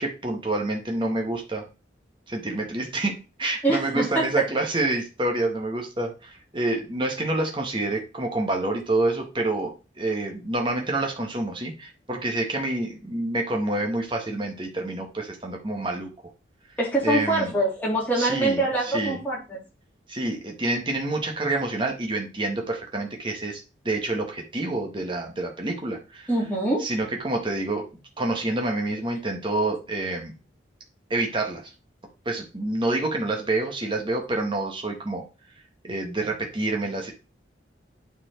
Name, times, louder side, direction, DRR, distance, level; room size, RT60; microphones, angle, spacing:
voice 1, 0.0-1.6 2.3-16.1 17.0-17.5 18.1-19.2 20.1-26.3 26.8-30.3 31.1-31.7 32.2-35.2 35.8-37.1, right 2 dB, 25° right, 2 dB, 1.6 m, -28 dB
voice 2, 3.6-4.2 16.8-19.6 26.3-26.8, right 1 dB, 10° left, -5 dB, 3.3 m, -24 dB
9.1 x 4.6 x 4.5 m, 0.31 s
head